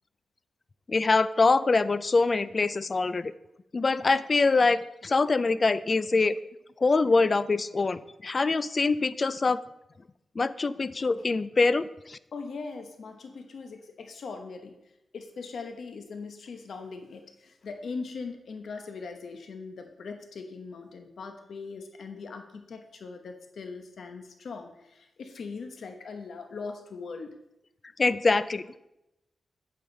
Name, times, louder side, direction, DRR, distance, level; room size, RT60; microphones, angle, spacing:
voice 1, 0.9-3.3 3.7-6.4 6.8-9.6 10.4-12.2 28.0-28.7, left 3 dB, 35° left, 15 dB, 0.4 m, -24 dB
voice 2, 12.3-14.8 15.1-27.4, left 4 dB, 70° left, 5 dB, 0.9 m, -40 dB
8.9 x 8.4 x 3.9 m, 0.88 s
wide cardioid pair, 130°, 0 cm